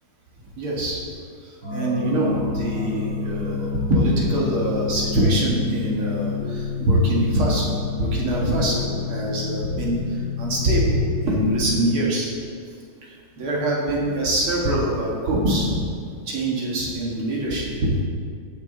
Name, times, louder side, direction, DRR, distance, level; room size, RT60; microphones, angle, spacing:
voice 1, 0.6-1.0 1.7-10.0 10.4-11.0 11.2-12.3 13.0-13.1 13.4-15.8 16.3-18.0, right 1 dB, 75° right, -5 dB, 2.6 m, -23 dB
sound 1, 1.6-11.7, left 5 dB, 55° right, 3.3 m, -29 dB
18.5 x 6.4 x 3.9 m, 2.3 s
omnidirectional pair, 2.3 m